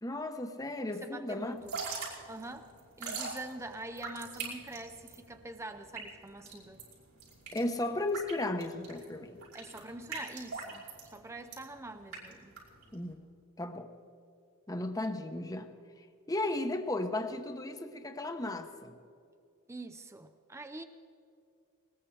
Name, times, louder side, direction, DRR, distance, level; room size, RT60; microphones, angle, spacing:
voice 1, 0.0-1.5 7.5-9.4 12.9-13.2 13.6-13.9 14.7-15.7 16.3-18.9, left 2 dB, 15° left, 7 dB, 0.9 m, -35 dB
voice 2, 1.0-1.7 2.3-2.7 3.0-6.8 9.5-10.8 11.1-12.6 19.7-20.8, right 2 dB, 15° right, 8 dB, 0.6 m, -44 dB
Drip / Trickle dribble, 1.5-13.1, right 4 dB, 85° right, 5.2 m, -43 dB
20.5 x 20.0 x 3.4 m, 2.5 s
head